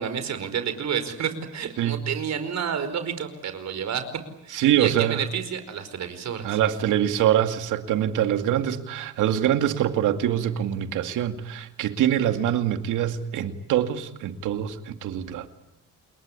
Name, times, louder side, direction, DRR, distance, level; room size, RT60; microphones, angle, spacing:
voice 1, 0.0-4.0 4.4-6.6, right 7 dB, 65° right, 10 dB, 5.0 m, -30 dB
voice 2, 4.5-5.2 6.4-15.5, right 11 dB, 85° right, 8 dB, 2.4 m, -24 dB
29.0 x 22.0 x 8.5 m, 0.84 s
cardioid pair, 90°, 30 cm